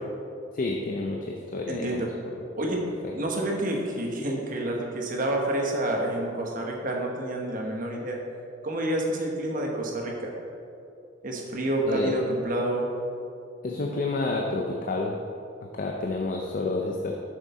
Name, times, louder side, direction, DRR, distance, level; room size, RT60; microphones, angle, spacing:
voice 1, 0.5-2.4 2.7-3.1 11.9-12.1 13.6-15.2 15.7-17.1, left 2 dB, 45° left, 0 dB, 0.5 m, -30 dB
voice 2, 1.7-2.1 2.5-2.8 3.1-8.2 8.6-10.3 11.2-12.9, right 1 dB, 45° right, 0 dB, 1.1 m, -28 dB
7.2 x 6.5 x 4.2 m, 2.5 s
head